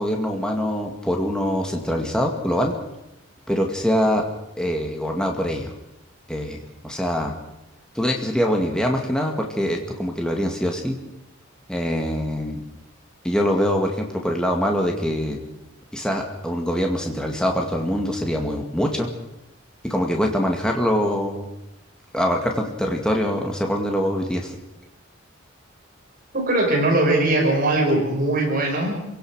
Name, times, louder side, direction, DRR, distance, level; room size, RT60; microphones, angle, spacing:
voice 1, 0.0-2.7 3.5-4.2 4.6-5.7 6.3-7.3 7.9-11.0 11.7-12.6 13.2-15.4 15.9-19.1 19.8-21.5 22.1-24.6, equal, 5° left, 1 dB, 2.1 m, -24 dB
voice 2, 26.3-29.0, right 2 dB, 40° right, 0 dB, 5.5 m, -20 dB
28.0 x 17.0 x 6.4 m, 0.93 s
head